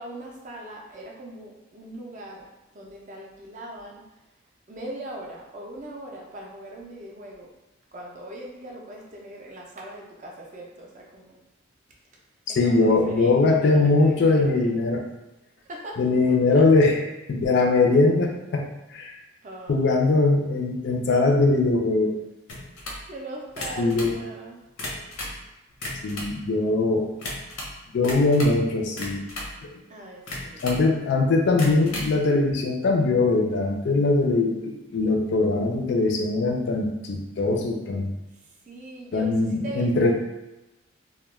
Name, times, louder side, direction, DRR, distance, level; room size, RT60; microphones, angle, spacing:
voice 1, 0.0-2.4 2.7-4.0 4.7-7.5 7.9-11.4 12.5-14.7 15.6-16.0 16.5-16.6 19.4-20.1 23.1-24.6 29.9-30.7 38.7-40.1, right 1 dB, 35° right, -1 dB, 0.4 m, -40 dB
voice 2, 12.5-15.0 16.0-17.0 17.3-19.1 19.7-22.1 23.8-24.1 26.0-27.1 27.9-29.2 30.6-38.1 39.1-40.1, left 3 dB, 55° left, 2 dB, 0.3 m, -21 dB
sound 1, 22.5-23.0 23.5-24.1 24.6-25.4 25.7-26.4 27.2-27.7 28.0-28.6 29.0-29.6 30.3-30.9 31.5-32.1, left 1 dB, 90° left, 0.6 m, -35 dB
2.2 x 2.0 x 3.0 m, 0.98 s
head